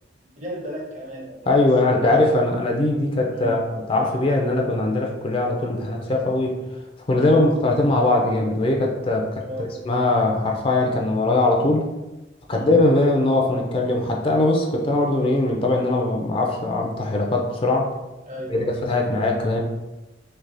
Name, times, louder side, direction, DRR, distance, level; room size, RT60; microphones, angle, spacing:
voice 1, 0.4-2.1 3.3-3.5 7.2-7.4 9.4-9.7 12.5-12.7 18.3-18.7, equal, 40° right, -1 dB, 0.9 m, -35 dB
voice 2, 1.5-6.6 7.1-11.9 12.5-17.9 18.5-19.6, left 2 dB, 30° left, 1 dB, 0.4 m, -21 dB
3.3 x 2.8 x 3.9 m, 1.1 s
head